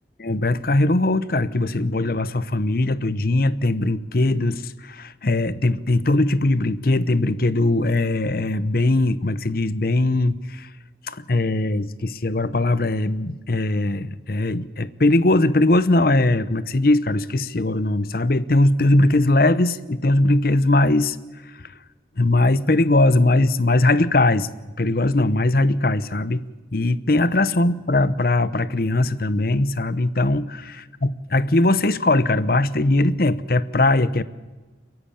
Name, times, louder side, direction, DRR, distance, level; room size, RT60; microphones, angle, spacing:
voice 1, 0.2-10.7 11.0-21.2 21.5-21.7 22.2-26.4 26.7-34.2, left 2 dB, 50° left, 15 dB, 0.8 m, -20 dB
30.0 x 11.0 x 8.6 m, 1.2 s
head